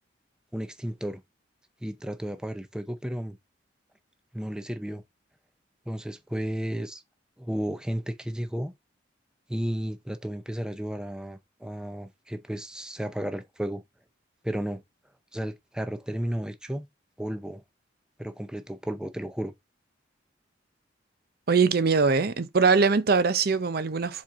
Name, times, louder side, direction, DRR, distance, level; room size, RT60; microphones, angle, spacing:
voice 1, 0.5-1.2 1.8-3.4 4.3-5.0 5.9-7.0 7.4-8.7 9.5-13.8 14.4-14.8 15.3-16.9 17.2-17.6 18.2-19.5, equal, 5° right, 0.5 m, -33 dB
voice 2, 21.5-24.2, right 4 dB, 55° right, 0.6 m, -22 dB
7.5 x 4.3 x 3.6 m
head